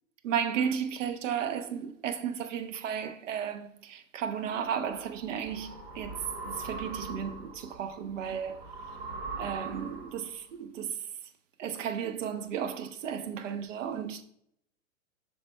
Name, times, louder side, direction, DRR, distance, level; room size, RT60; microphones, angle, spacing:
voice 1, 0.2-8.6 9.4-11.1 11.6-14.2, right 8 dB, 70° right, 0.9 m, -34 dB
sound 1, 4.7-10.4, right 3 dB, 45° right, 2.4 m, -42 dB
7.7 x 5.8 x 2.2 m
hypercardioid pair, 140°, 39 cm